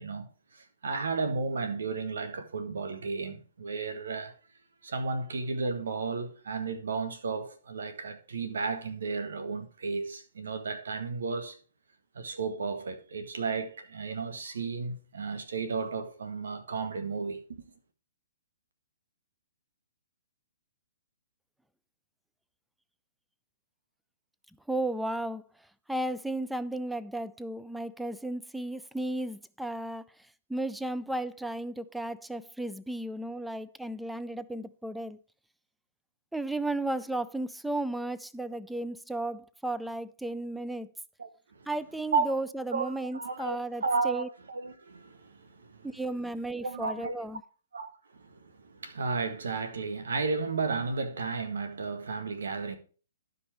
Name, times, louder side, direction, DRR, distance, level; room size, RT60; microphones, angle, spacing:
voice 1, 0.0-4.3 4.8-11.6 12.1-17.6 41.2-41.7 42.1-42.2 42.7-45.9 46.6-47.1 47.7-52.8, right 4 dB, 75° right, 1.4 m, -33 dB
voice 2, 24.7-25.4 25.9-30.0 30.5-35.2 36.3-40.9 41.7-44.3 45.8-47.4, right 1 dB, ahead, 0.4 m, -34 dB
11.5 x 5.3 x 4.5 m
hypercardioid pair, 135°, 0 cm